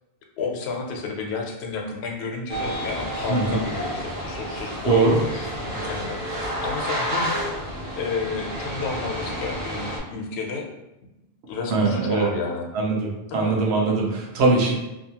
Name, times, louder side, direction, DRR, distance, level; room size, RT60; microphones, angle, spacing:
voice 1, 0.4-10.7 11.5-12.7 13.3-13.6, left 4 dB, 90° left, 1 dB, 0.8 m, -31 dB
sound 1, 2.5-10.0, equal, 55° right, 0.9 m, -30 dB
voice 2, 4.8-5.2 11.7-12.3 12.7-14.7, right 3 dB, 85° right, -2 dB, 0.9 m, -21 dB
2.7 x 2.3 x 2.8 m, 0.95 s
omnidirectional pair, 1.1 m